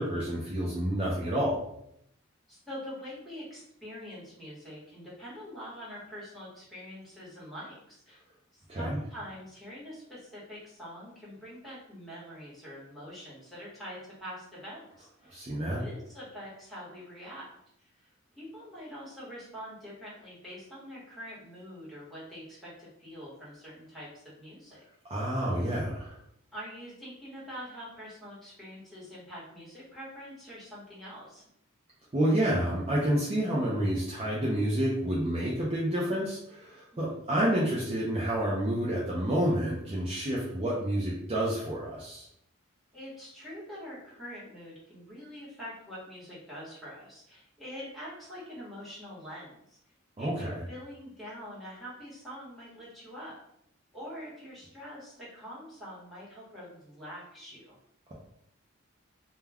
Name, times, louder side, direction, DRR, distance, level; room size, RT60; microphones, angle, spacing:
voice 1, 0.0-1.6 8.7-9.0 15.3-15.8 25.1-26.2 32.1-42.3 50.2-50.6, right 1 dB, 30° right, -5 dB, 0.5 m, -29 dB
voice 2, 2.5-8.2 8.5-17.5 17.8-24.8 26.5-31.4 37.0-37.2 42.9-49.8 50.2-53.4 53.9-57.8, equal, ahead, -8 dB, 1.1 m, -45 dB
2.2 x 2.2 x 3.3 m, 0.74 s
head